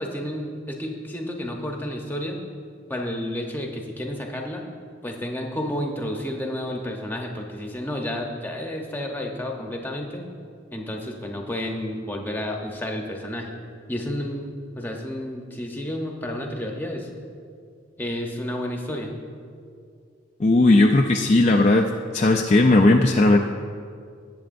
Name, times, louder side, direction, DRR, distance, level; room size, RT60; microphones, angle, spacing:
voice 1, 0.0-2.4 2.9-4.6 5.0-10.3 10.7-13.5 13.9-17.1 18.0-19.2, left 1 dB, 10° left, 1 dB, 0.9 m, -31 dB
voice 2, 20.4-21.9 22.1-23.4, left 2 dB, 35° left, 1 dB, 0.4 m, -16 dB
19.5 x 7.7 x 2.6 m, 2.3 s
head